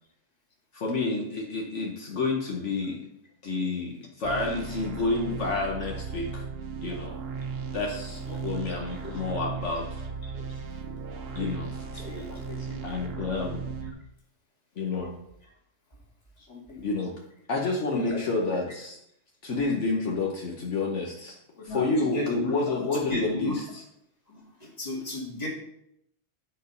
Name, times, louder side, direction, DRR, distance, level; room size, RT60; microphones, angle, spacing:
voice 1, 0.7-3.1 3.4-6.4 6.8-7.2 7.7-9.8 11.3-13.6 14.8-15.1 16.5-17.1 17.5-19.0 19.4-23.8, left 3 dB, 70° left, -1 dB, 1.3 m, -30 dB
sound 1, 4.2-13.9, right 5 dB, 55° right, 1.0 m, -36 dB
voice 2, 17.9-18.2 21.7-23.5 24.3-25.5, left 1 dB, 30° left, -2 dB, 2.1 m, -34 dB
9.0 x 4.3 x 5.3 m, 0.76 s
omnidirectional pair, 1.3 m